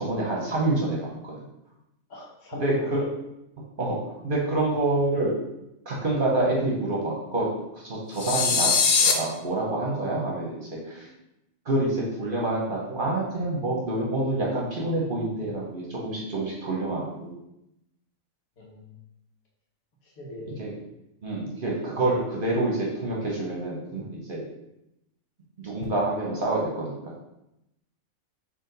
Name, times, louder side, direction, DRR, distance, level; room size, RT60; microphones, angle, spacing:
voice 1, 0.0-1.3 2.6-3.0 3.8-5.4 5.9-7.5 7.7-8.7 9.1-11.1 11.6-17.3 20.5-20.7 21.2-24.4 25.6-26.9, right 2 dB, 45° right, -3 dB, 0.9 m, -27 dB
voice 2, 2.1-3.0 18.6-19.0 20.2-20.5, left 1 dB, 80° left, -3 dB, 1.5 m, -38 dB
sound 1, 8.2-9.1, left 5 dB, 60° left, 0.7 m, -21 dB
4.3 x 2.9 x 3.9 m, 0.86 s
omnidirectional pair, 1.4 m